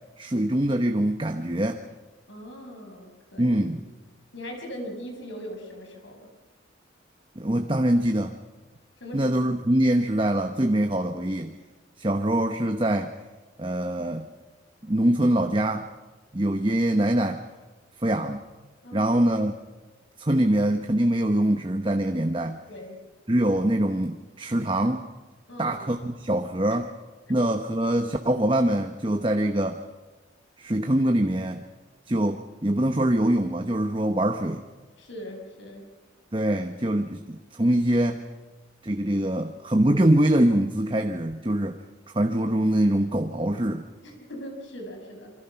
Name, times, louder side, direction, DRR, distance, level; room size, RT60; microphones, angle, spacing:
voice 1, 0.2-1.8 3.4-3.9 7.4-8.3 9.1-11.6 12.0-13.1 13.6-14.3 14.9-15.9 16.3-17.4 18.0-18.4 18.9-19.5 20.2-22.6 23.3-25.0 25.6-26.9 27.3-29.8 30.6-31.6 32.1-34.6 36.3-38.2 38.8-41.8 42.1-43.8, right 1 dB, 25° right, 5 dB, 1.0 m, -24 dB
voice 2, 2.3-3.6 4.3-6.3 9.0-9.3 18.8-19.1 22.7-23.0 25.5-25.8 26.7-26.8 27.3-27.4 35.0-35.9 44.0-45.3, equal, 75° left, 3 dB, 5.6 m, -40 dB
27.0 x 25.0 x 5.9 m, 1.2 s
head